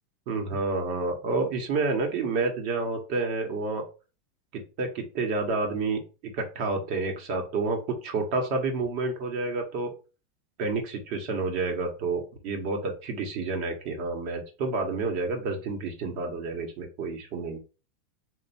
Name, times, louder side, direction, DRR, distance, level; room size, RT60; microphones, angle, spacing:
voice 1, 0.3-3.8 4.5-9.9 10.6-17.6, right 3 dB, 55° right, 3 dB, 1.3 m, -29 dB
3.5 x 2.6 x 4.2 m, 0.33 s
supercardioid pair, 125°, 0 cm